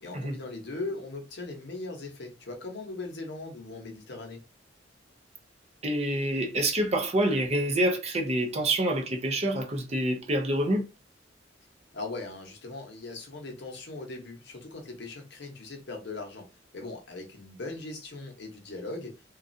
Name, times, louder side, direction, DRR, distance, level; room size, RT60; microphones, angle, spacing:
voice 1, 0.0-4.4 11.9-16.5 16.7-19.1, left 2 dB, 60° left, 0.8 m, -39 dB
voice 2, 5.8-10.8, right 1 dB, 35° right, 0.6 m, -27 dB
3.1 x 2.4 x 2.5 m
head